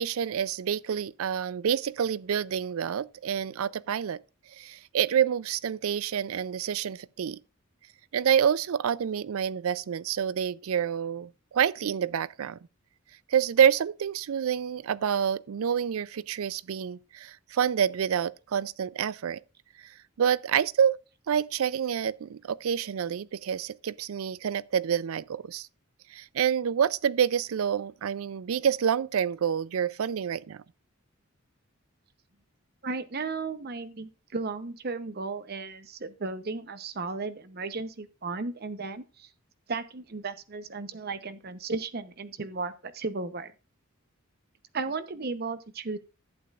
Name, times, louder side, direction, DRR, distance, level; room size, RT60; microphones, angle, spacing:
voice 1, 0.0-4.2 4.5-7.4 8.1-12.6 13.3-19.4 19.8-21.0 21.3-25.7 26.1-30.6, right 8 dB, 80° right, 0.4 m, -28 dB
voice 2, 32.8-39.3 39.7-43.5 44.7-46.0, right 3 dB, 45° right, 0.8 m, -35 dB
11.5 x 8.6 x 2.4 m
head